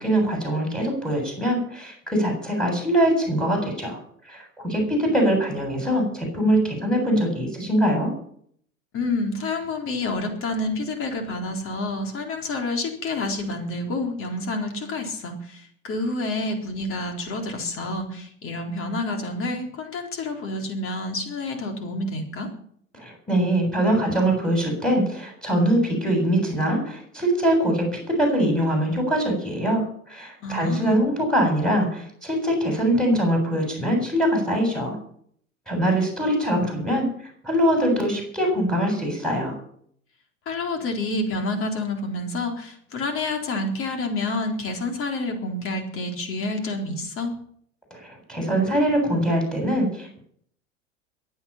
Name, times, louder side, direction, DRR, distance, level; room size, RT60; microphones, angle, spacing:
voice 1, 0.0-4.0 4.3-8.1 22.9-35.0 35.7-37.1 37.4-39.5 47.9-50.2, right 1 dB, ahead, 1 dB, 7.8 m, -23 dB
voice 2, 8.9-22.5 30.4-31.0 40.5-47.3, left 2 dB, 35° left, 4 dB, 4.0 m, -28 dB
22.5 x 8.8 x 5.9 m, 0.62 s
figure-of-eight pair, 80°, 38 cm